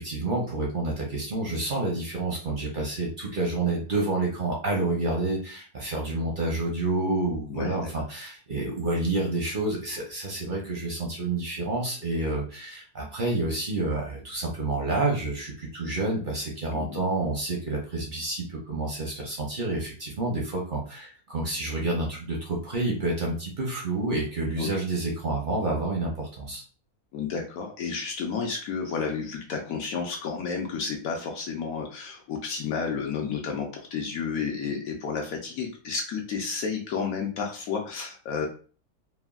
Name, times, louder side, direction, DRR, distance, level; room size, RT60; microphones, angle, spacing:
voice 1, 0.0-26.6, right 2 dB, 50° right, -2 dB, 0.6 m, -29 dB
voice 2, 7.5-7.8 16.7-17.0 24.6-24.7 27.1-38.5, left 5 dB, 70° left, 1 dB, 0.9 m, -31 dB
3.3 x 2.1 x 2.3 m, 0.39 s
omnidirectional pair, 1.6 m